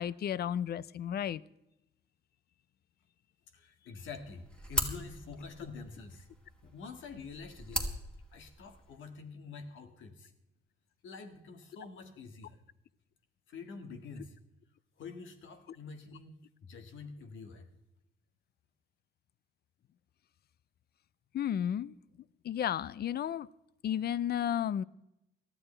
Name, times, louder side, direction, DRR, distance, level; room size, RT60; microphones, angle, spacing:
voice 1, 0.0-1.4 21.3-22.0 22.4-23.5 23.8-24.8, left 9 dB, 55° left, 0.5 m, -33 dB
voice 2, 3.5-6.3 6.6-7.9 8.3-10.3 11.0-12.6 13.5-14.4 15.0-17.7, left 4 dB, 75° left, 1.9 m, -47 dB
sound 1, 4.0-9.0, equal, 5° left, 2.2 m, -39 dB
19.0 x 13.0 x 3.3 m
cardioid pair, 90°, 20 cm